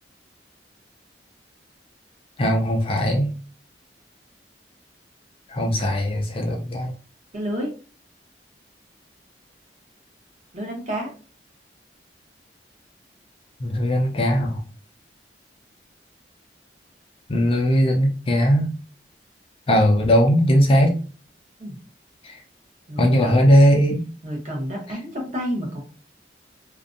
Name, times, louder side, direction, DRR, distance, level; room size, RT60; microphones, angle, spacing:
voice 1, 2.4-3.3 5.5-6.9 13.6-14.6 17.3-18.8 19.7-21.0 22.2-22.4 23.0-24.0, equal, 30° left, 2 dB, 0.4 m, -19 dB
voice 2, 7.3-7.8 10.5-11.1 21.6-21.8 22.9-23.5 24.2-25.8, equal, 45° right, -1 dB, 0.9 m, -30 dB
2.5 x 2.1 x 2.5 m, 0.37 s
head